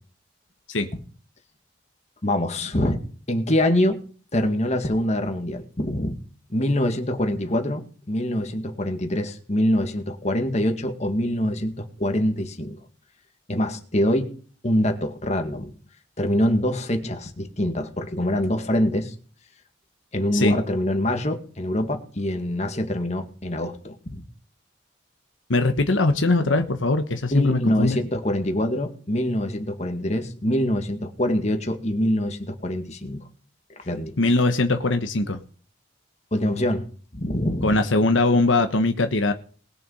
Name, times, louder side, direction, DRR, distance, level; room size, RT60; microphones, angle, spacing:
voice 1, 2.2-3.0 3.3-4.0 4.3-6.2 6.5-12.8 13.5-14.3 14.6-15.7 16.2-19.1 20.1-24.2 27.3-33.2 33.7-34.1 36.3-36.9 37.1-37.8, left 1 dB, 35° left, 5 dB, 2.0 m, -24 dB
voice 2, 25.5-28.0 34.2-35.4 37.6-39.3, left 2 dB, 85° left, 7 dB, 1.3 m, -21 dB
20.0 x 6.9 x 5.6 m, 0.42 s
head